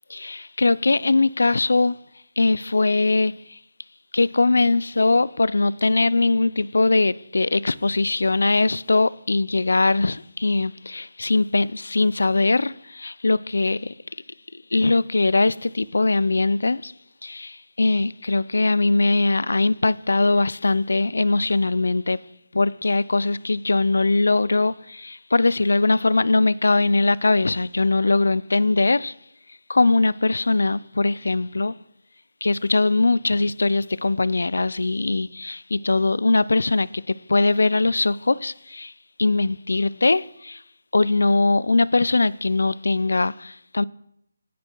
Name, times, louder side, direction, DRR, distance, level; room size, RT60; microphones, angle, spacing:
voice 1, 0.1-1.9 2.4-3.6 4.1-13.9 14.5-16.9 17.2-22.2 22.5-29.1 29.7-31.7 32.4-37.0 37.3-38.9 39.2-40.6 40.9-43.8, left 3 dB, 90° left, 0.6 m, -21 dB
25.0 x 9.4 x 4.6 m
hypercardioid pair, 175°, 0 cm